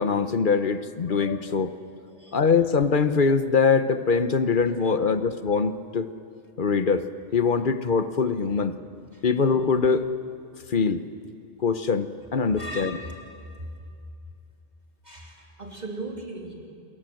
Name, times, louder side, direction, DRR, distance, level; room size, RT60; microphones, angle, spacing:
voice 1, 0.0-1.7 2.3-6.1 6.6-7.0 7.3-8.8 9.2-10.0 10.7-11.0 11.6-13.0, left 5 dB, 55° left, 11 dB, 1.1 m, -23 dB
voice 2, 12.5-13.1 15.0-16.5, right 1 dB, 40° right, 0 dB, 3.3 m, -37 dB
28.5 x 20.5 x 7.8 m, 2.4 s
omnidirectional pair, 1.1 m